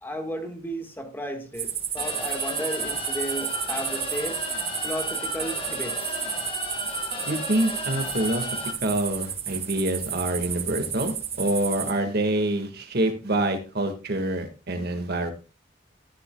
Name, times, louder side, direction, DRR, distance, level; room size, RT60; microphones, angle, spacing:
voice 1, 0.0-4.4 4.8-6.1, equal, 10° left, 5 dB, 1.6 m, -34 dB
sound 1, 1.5-11.9, right 9 dB, 35° right, 1.3 m, -32 dB
sound 2, 2.0-8.7, left 2 dB, 30° left, 1.9 m, -34 dB
voice 2, 7.3-8.5 8.8-15.3, right 1 dB, 55° right, 6 dB, 1.7 m, -26 dB
13.5 x 10.0 x 2.3 m, 0.32 s
head